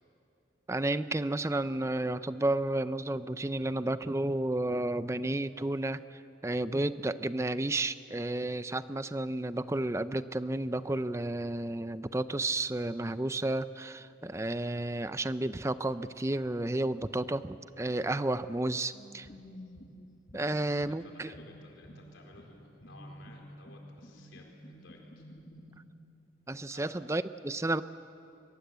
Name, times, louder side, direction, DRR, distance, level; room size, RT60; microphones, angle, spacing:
voice 1, 0.7-19.3 20.3-21.3 26.5-27.8, right 2 dB, 15° right, 13 dB, 0.5 m, -32 dB
sound 1, 18.9-25.8, equal, 40° left, 2.0 m, -51 dB
voice 2, 21.0-25.3 26.7-27.0, left 2 dB, 85° left, 1 dB, 4.3 m, -56 dB
23.0 x 21.5 x 8.1 m, 2.7 s
head